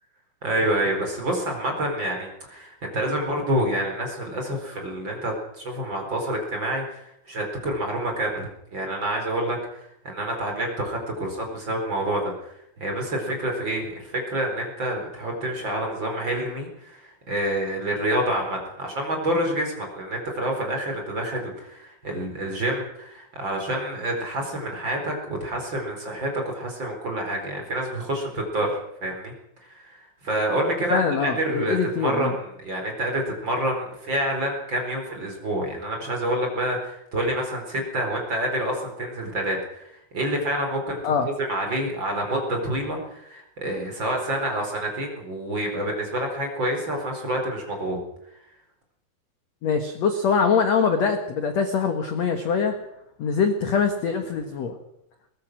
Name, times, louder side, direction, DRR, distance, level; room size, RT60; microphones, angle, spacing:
voice 1, 0.4-12.5 12.8-29.3 29.6-48.0, right 1 dB, 25° right, 2 dB, 4.8 m, -28 dB
voice 2, 30.9-32.4 41.0-41.3 49.6-52.7 53.2-54.8, left 5 dB, 60° left, 6 dB, 1.9 m, -23 dB
22.5 x 19.0 x 6.3 m, 0.80 s
omnidirectional pair, 5.0 m